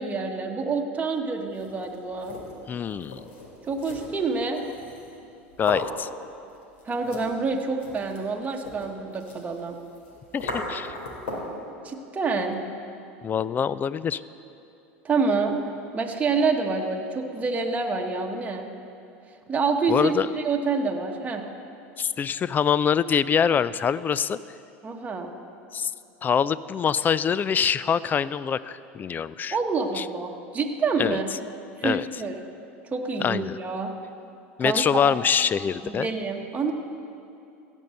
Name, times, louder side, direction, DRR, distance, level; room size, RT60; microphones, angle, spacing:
voice 1, 0.0-2.4 3.7-4.6 6.9-9.8 11.8-12.6 15.0-15.6 15.9-18.7 19.5-21.4 24.8-25.3 29.5-31.2 31.8-32.3 32.9-33.9 34.6-35.0 35.8-36.7, right 4 dB, 20° right, 1 dB, 1.3 m, -27 dB
sound 1, 1.4-11.6, left 1 dB, 80° left, 2.8 m, -39 dB
voice 2, 2.7-3.2 5.6-6.1 10.3-10.9 13.2-14.2 19.9-20.3 22.0-24.4 25.7-25.9 26.2-29.6 29.9-30.1 31.0-31.2 31.8-32.1 33.2-33.6 34.6-36.1, left 7 dB, 30° left, 17 dB, 0.3 m, -24 dB
16.0 x 5.5 x 7.7 m, 2.6 s
hypercardioid pair, 95°, 7 cm